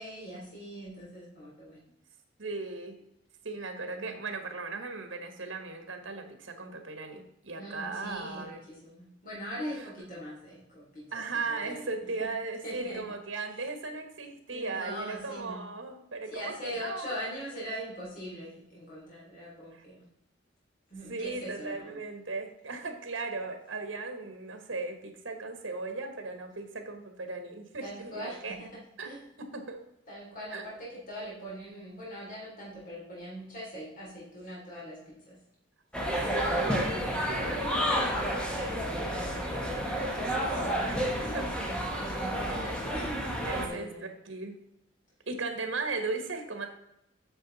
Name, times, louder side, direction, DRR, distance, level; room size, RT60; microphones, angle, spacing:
voice 1, 0.0-1.8 4.0-4.1 7.6-11.2 11.6-11.9 12.2-12.3 12.6-13.1 14.5-15.6 16.3-20.0 20.9-22.0 27.8-29.2 30.1-35.4 40.5-44.0, equal, 45° left, -6 dB, 3.5 m, -41 dB
voice 2, 2.4-3.0 3.4-8.5 9.8-9.9 11.1-17.2 19.7-19.8 21.1-28.6 29.0-29.1 29.4-29.8 30.5-30.7 36.3-37.0 37.3-41.5 43.4-44.6 45.3-46.7, right 3 dB, 75° right, 5 dB, 1.4 m, -38 dB
sound 1, 35.9-43.7, equal, 5° left, 1.3 m, -30 dB
8.8 x 6.5 x 4.1 m, 0.82 s
head